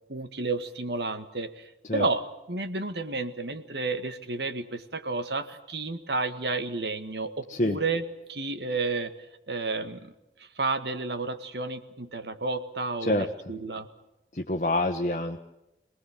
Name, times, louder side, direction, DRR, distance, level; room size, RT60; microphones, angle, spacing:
voice 1, 0.1-2.2 2.5-8.0 8.3-9.1 9.5-10.1 10.4-13.9, right 3 dB, 70° right, 9 dB, 1.9 m, -31 dB
voice 2, 14.3-15.4, left 1 dB, 45° left, 3 dB, 1.3 m, -26 dB
27.0 x 19.5 x 7.5 m, 0.92 s
head